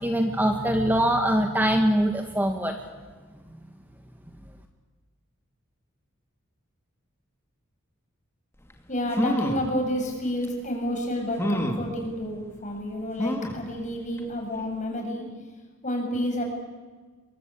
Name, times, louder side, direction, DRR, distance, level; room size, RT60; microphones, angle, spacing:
voice 1, 0.0-2.7, right 1 dB, 10° right, 4 dB, 1.6 m, -23 dB
sound 1, 8.7-8.8 9.1-9.7 10.4-10.5 11.4-11.9 13.2-13.7 14.2-14.3 14.6-14.7, equal, 10° left, 2.6 m, -27 dB
voice 2, 8.9-15.3 15.8-16.4, left 1 dB, 35° left, 1 dB, 7.5 m, -30 dB
27.0 x 24.0 x 8.6 m, 1.4 s
head